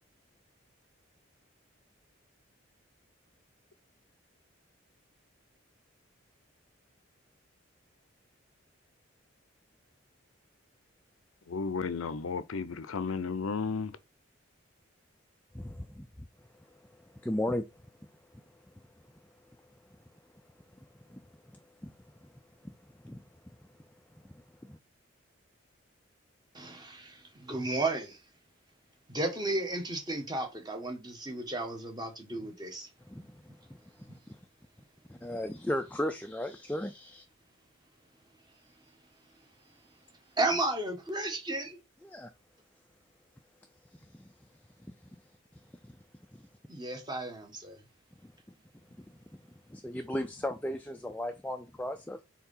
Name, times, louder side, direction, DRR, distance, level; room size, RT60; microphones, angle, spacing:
voice 1, 11.5-14.0, left 5 dB, 80° left, 0.6 m, -33 dB
voice 2, 15.5-16.1 16.7-17.8 18.3-18.4 21.1-21.3 21.8-22.3 22.6-22.8 23.0-23.6 24.3-24.8 33.1-34.4 35.1-37.2 42.0-42.3 43.9-44.3 44.8-44.9 45.5-46.0 46.3-46.5 48.2-48.3 49.0-49.4 49.7-52.2, left 1 dB, 5° left, 0.3 m, -37 dB
voice 3, 26.5-28.2 29.1-32.9 34.1-34.2 40.4-41.8 46.7-47.8, right 2 dB, 20° right, 1.3 m, -33 dB
4.7 x 3.7 x 5.5 m
head